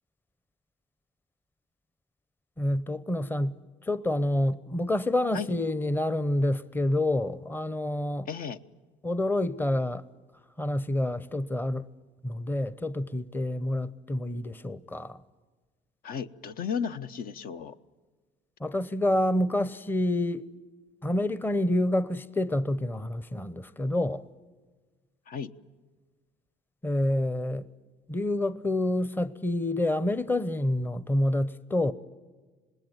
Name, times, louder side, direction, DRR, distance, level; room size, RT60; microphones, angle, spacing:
voice 1, 2.6-8.3 9.0-10.0 10.6-11.9 12.2-15.2 18.6-20.5 21.0-24.2 26.8-27.7 28.1-31.9, left 1 dB, 10° left, 0.8 m, -28 dB
voice 2, 8.3-8.6 16.0-17.7 25.3-25.5, left 6 dB, 60° left, 1.1 m, -34 dB
26.5 x 20.0 x 9.2 m
cardioid pair, 110°, 17 cm